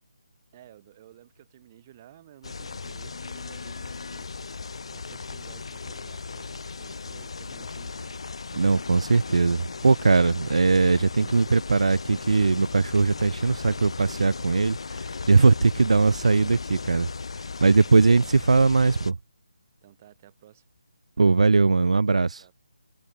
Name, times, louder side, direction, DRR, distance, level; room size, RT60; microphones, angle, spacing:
voice 1, 0.5-4.5 4.9-8.2 17.6-18.3 19.8-20.6 22.4-22.5, right 12 dB, 20° right, 2.7 m, -53 dB
sound 1, 2.4-19.1, left 4 dB, 55° left, 3.5 m, -37 dB
voice 2, 8.5-17.1 17.6-19.2 21.2-22.4, right 4 dB, 70° right, 0.7 m, -20 dB
hypercardioid pair, 175°, 4 cm